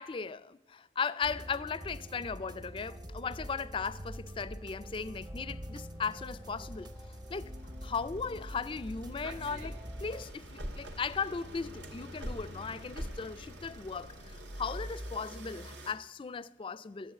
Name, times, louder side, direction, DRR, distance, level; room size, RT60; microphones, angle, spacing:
voice 1, 0.0-6.9 7.3-7.5 7.8-17.1, left 5 dB, 30° left, 0.4 m, -37 dB
sound 1, 1.2-10.2, equal, 25° right, 0.7 m, -45 dB
sound 2, 4.2-4.5 5.1-15.9, equal, 85° right, 2.0 m, -45 dB
12.5 x 7.9 x 8.9 m
head